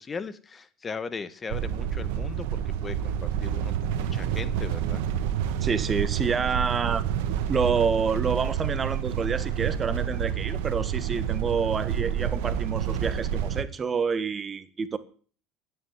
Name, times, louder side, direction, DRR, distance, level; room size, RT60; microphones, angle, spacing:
voice 1, 0.0-5.0, left 5 dB, 30° left, 1.4 m, -38 dB
sound 1, 1.5-13.6, right 9 dB, 75° right, 1.4 m, -28 dB
voice 2, 5.6-7.1 7.5-15.0, right 5 dB, 30° right, 1.6 m, -28 dB
12.5 x 10.0 x 9.5 m
hypercardioid pair, 75°, 0 cm